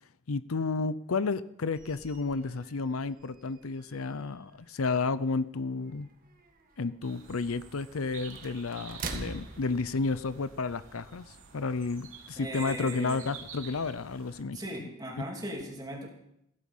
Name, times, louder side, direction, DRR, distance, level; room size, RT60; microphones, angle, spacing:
voice 1, 0.3-6.1 6.8-14.9 15.2-15.3, left 4 dB, 80° left, 15 dB, 0.6 m, -32 dB
sound 1, 1.7-10.7, right 3 dB, 40° right, 1.7 m, -46 dB
sound 2, 7.0-14.4, right 6 dB, 65° right, 3.5 m, -50 dB
voice 2, 12.4-13.2 14.5-16.1, right 1 dB, 20° right, 0 dB, 3.1 m, -38 dB
16.0 x 13.5 x 5.5 m, 0.78 s
head